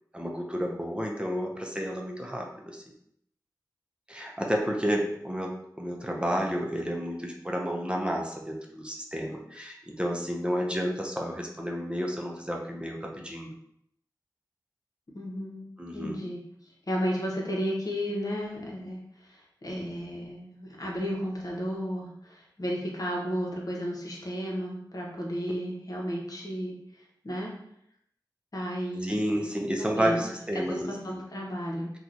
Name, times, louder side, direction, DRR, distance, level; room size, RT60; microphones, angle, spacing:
voice 1, 0.1-2.8 4.1-13.5 15.8-16.2 29.0-31.2, equal, 15° right, 0 dB, 0.6 m, -31 dB
voice 2, 4.6-5.0 15.1-15.7 15.9-16.4 16.9-26.7 27.2-27.5 28.5-29.5 29.9-30.3 30.5-31.9, equal, 55° left, -2 dB, 0.9 m, -33 dB
2.9 x 2.3 x 3.8 m, 0.74 s
wide cardioid pair, 45°, 8 cm